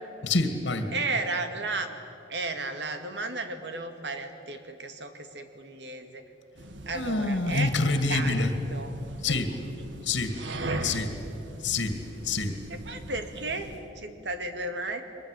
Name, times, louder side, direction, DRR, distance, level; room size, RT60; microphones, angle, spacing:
voice 1, 0.2-0.9 6.9-8.5 9.2-9.5 10.0-10.4 10.8-11.1 11.6-12.0 12.2-12.6, left 3 dB, 85° left, 8 dB, 2.1 m, -26 dB
voice 2, 0.9-1.9 2.3-6.2 6.9-7.7 8.1-9.0 9.3-9.5 12.7-13.7 14.0-15.0, right 3 dB, 70° right, 7 dB, 2.2 m, -34 dB
sound 1, 6.6-13.9, right 2 dB, 90° right, 1.9 m, -39 dB
23.5 x 21.0 x 9.9 m, 2.8 s
head